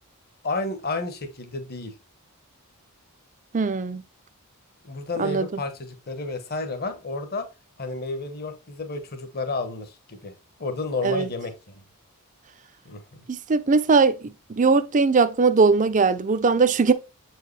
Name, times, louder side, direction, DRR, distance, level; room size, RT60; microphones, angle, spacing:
voice 1, 0.4-1.9 4.8-7.5 7.8-10.3 10.6-11.8 12.8-13.0, left 3 dB, 45° left, 1.1 m, -31 dB
voice 2, 3.5-4.0 5.2-5.5 11.0-11.3 13.3-14.2 14.5-16.9, right 4 dB, 35° right, 0.5 m, -20 dB
7.5 x 4.7 x 3.2 m
head